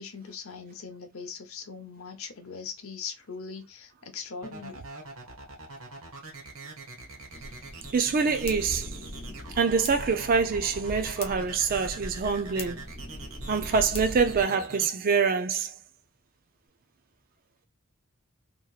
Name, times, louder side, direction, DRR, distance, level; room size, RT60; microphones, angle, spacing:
voice 1, 0.0-4.9, left 5 dB, 75° left, 0.8 m, -40 dB
sound 1, 4.4-14.9, right 3 dB, 75° right, 1.1 m, -43 dB
sound 2, 7.3-14.4, left 1 dB, 25° left, 0.6 m, -40 dB
voice 2, 7.9-8.9 9.6-12.8 13.5-15.7, right 5 dB, 40° right, 0.4 m, -25 dB
3.0 x 2.9 x 2.3 m
head